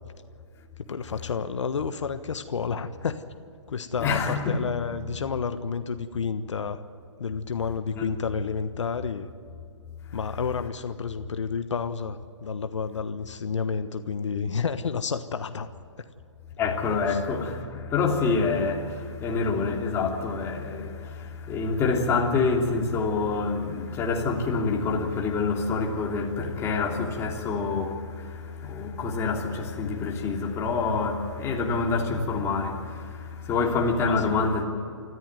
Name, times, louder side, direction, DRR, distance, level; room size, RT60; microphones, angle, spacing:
voice 1, 0.9-3.2 3.7-6.8 7.2-9.3 10.1-15.7 16.0-16.1 17.1-17.2 34.1-34.5, left 5 dB, 75° left, 1.2 m, -30 dB
voice 2, 4.0-4.5 7.9-8.1 16.6-34.6, left 4 dB, 15° left, 3.0 m, -27 dB
25.0 x 14.5 x 9.5 m
hypercardioid pair, 145°, 15 cm